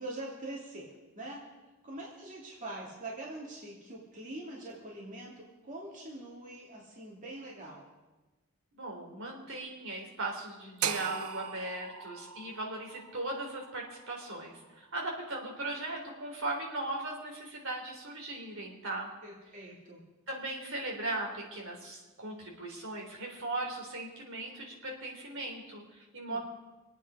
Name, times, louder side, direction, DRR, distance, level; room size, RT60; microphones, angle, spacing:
voice 1, 0.0-1.4 1.8-7.8 19.2-20.0 26.3-26.4, right 1 dB, 35° right, -3 dB, 2.9 m, -43 dB
voice 2, 8.8-19.1 20.3-26.4, right 2 dB, 65° right, 0 dB, 3.5 m, -38 dB
sound 1, 10.8-14.9, right 8 dB, 90° right, 0.7 m, -39 dB
26.0 x 9.1 x 5.1 m, 1.2 s
head